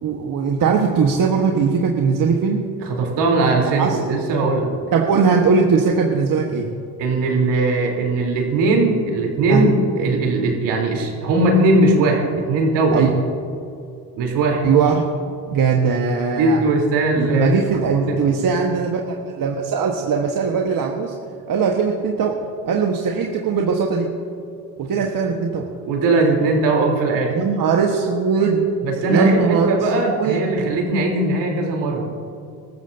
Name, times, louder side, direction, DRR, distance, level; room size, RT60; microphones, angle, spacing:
voice 1, 0.0-2.6 3.6-4.1 4.9-6.7 9.5-9.6 12.9-13.1 14.6-15.1 15.5-16.6 17.1-21.1 21.5-22.4 22.6-24.1 24.8-25.7 27.3-28.7 29.1-30.4, right 5 dB, 50° right, 1 dB, 1.5 m, -20 dB
voice 2, 2.8-4.7 7.0-9.7 10.0-13.0 14.2-14.7 16.4-18.2 25.9-27.4 28.8-32.1, right 2 dB, 70° right, 0 dB, 3.8 m, -19 dB
22.0 x 13.5 x 2.8 m, 2.4 s
supercardioid pair, 75°, 43 cm